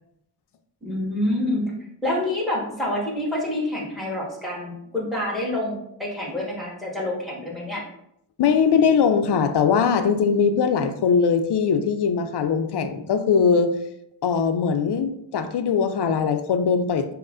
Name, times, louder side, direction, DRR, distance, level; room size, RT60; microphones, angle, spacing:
voice 1, 0.8-1.7 2.0-7.8, left 1 dB, ahead, -4 dB, 1.3 m, -27 dB
voice 2, 8.4-13.7 14.2-17.1, left 6 dB, 70° left, 8 dB, 0.5 m, -21 dB
5.3 x 2.1 x 2.5 m, 0.76 s
cardioid pair, 65°, 43 cm